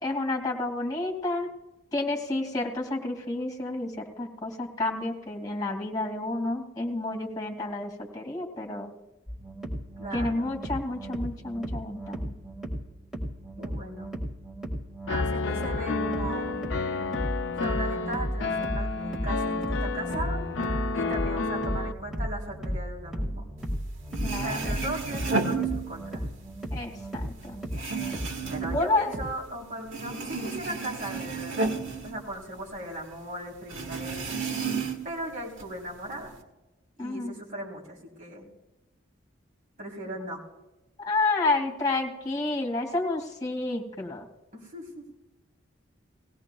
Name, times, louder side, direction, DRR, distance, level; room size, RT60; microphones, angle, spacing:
voice 1, 0.0-1.5 1.9-8.9 10.1-12.3 24.2-24.7 26.7-27.6 28.7-29.1 37.0-37.3 41.0-44.2, left 2 dB, 20° left, 2 dB, 2.4 m, -30 dB
sound 1, 9.3-29.2, equal, ahead, 2.0 m, -35 dB
voice 2, 10.0-10.5 13.6-14.1 15.1-16.6 17.6-20.4 20.9-23.4 24.4-26.3 28.5-31.7 32.0-34.4 35.0-36.3 37.0-38.5 39.8-40.4 44.5-45.0, right 1 dB, 40° right, -3 dB, 3.5 m, -38 dB
Piano, 15.1-21.9, left 4 dB, 70° left, 0.5 m, -30 dB
sound 2, 23.8-23.9 24.1-26.3 26.7-29.6 29.9-32.9 33.1-33.2 33.7-35.2 35.6-36.3, right 4 dB, 75° right, 1.6 m, -32 dB
20.0 x 16.5 x 2.3 m, 1.0 s
head